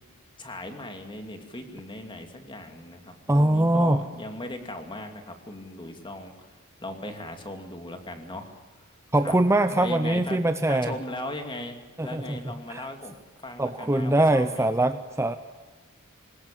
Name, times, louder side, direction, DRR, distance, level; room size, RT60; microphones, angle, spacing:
voice 1, 0.4-6.5 6.8-8.5 9.2-9.3 9.7-10.4 10.7-14.7, left 1 dB, 20° left, 5 dB, 2.5 m, -38 dB
voice 2, 3.3-4.1 9.1-11.0 12.0-12.9 13.6-15.4, right 1 dB, 15° right, 9 dB, 0.7 m, -23 dB
22.0 x 19.5 x 9.1 m, 1.3 s
head